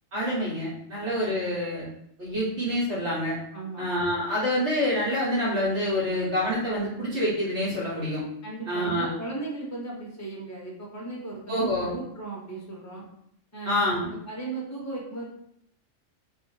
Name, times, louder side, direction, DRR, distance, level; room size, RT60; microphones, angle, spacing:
voice 1, 0.1-1.9 2.2-3.4 3.8-8.2 8.7-9.1 11.5-11.9 13.6-14.1, left 1 dB, 65° right, -7 dB, 1.2 m, -27 dB
voice 2, 3.5-3.9 8.4-13.0 13.5-15.3, right 3 dB, 20° left, -3 dB, 0.6 m, -37 dB
2.5 x 2.5 x 3.8 m, 0.72 s
omnidirectional pair, 1.3 m